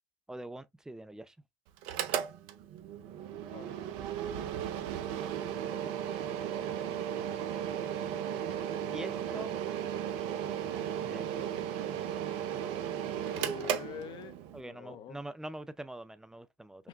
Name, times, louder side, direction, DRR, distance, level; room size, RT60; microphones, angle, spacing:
voice 1, 0.3-1.4 5.5-6.2 8.9-9.6 11.0-11.5 14.5-16.9, right 1 dB, 5° right, 0.4 m, -45 dB
Mechanical fan, 1.8-14.6, right 9 dB, 60° right, 0.7 m, -35 dB
voice 2, 13.2-15.2 16.8-16.9, left 9 dB, 45° left, 0.6 m, -45 dB
5.9 x 2.2 x 2.3 m
hypercardioid pair, 85°, 11 cm